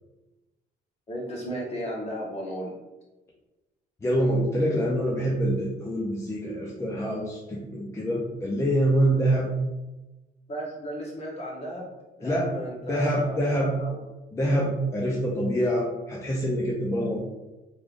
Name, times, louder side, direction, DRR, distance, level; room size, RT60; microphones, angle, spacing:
voice 1, 1.1-2.7 10.5-11.9 12.2-14.0, equal, 40° left, -4 dB, 1.3 m, -35 dB
voice 2, 4.0-9.5 12.2-12.5 12.8-13.7 14.3-17.2, equal, 15° left, -4 dB, 0.5 m, -25 dB
3.6 x 3.3 x 2.5 m, 1.1 s
cardioid pair, 110°, 17 cm